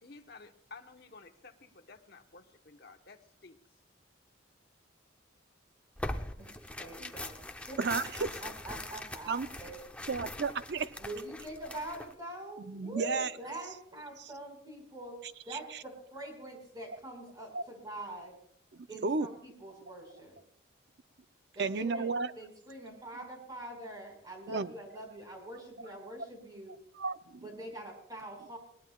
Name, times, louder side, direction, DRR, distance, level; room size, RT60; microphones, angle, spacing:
voice 1, 0.0-3.6, left 3 dB, 55° left, 5 dB, 1.1 m, -53 dB
Tearing, 6.0-12.1, left 1 dB, 5° left, 0.7 m, -42 dB
voice 2, 6.8-7.4 7.7-9.8 10.1-10.2 11.0-15.2 15.4-18.4 18.9-20.4 21.5-26.8 27.4-28.6, right 1 dB, 20° right, 1 dB, 4.7 m, -44 dB
voice 3, 7.8-8.3 9.3-9.5 10.1-10.9 12.6-13.3 14.2-14.3 15.5-15.8 17.5-17.6 19.0-19.3 21.6-22.3 24.5-24.7 27.0-27.4, right 4 dB, 60° right, 12 dB, 0.6 m, -33 dB
21.0 x 19.0 x 2.3 m, 0.70 s
head